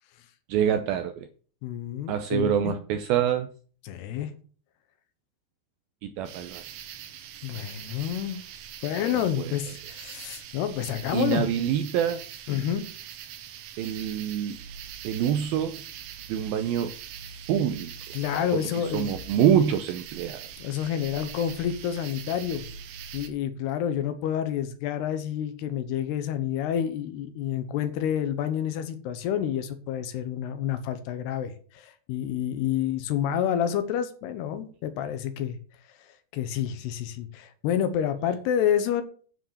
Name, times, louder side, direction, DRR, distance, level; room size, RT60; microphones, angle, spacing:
voice 1, 0.5-1.3 2.1-3.5 6.0-6.6 9.4-9.5 11.1-12.2 13.8-14.6 15.0-15.8 16.3-16.9 17.5-17.9 18.5-20.4, right 9 dB, 90° right, 9 dB, 2.1 m, -26 dB
voice 2, 1.6-2.7 3.8-4.3 7.4-8.4 8.8-11.5 12.5-12.8 18.1-19.1 20.6-22.6 23.1-35.6 36.3-39.0, left 9 dB, 75° left, 10 dB, 3.0 m, -29 dB
sound 1, 6.3-23.3, right 8 dB, 70° right, 2.9 m, -42 dB
9.9 x 6.1 x 6.8 m, 0.43 s
omnidirectional pair, 5.0 m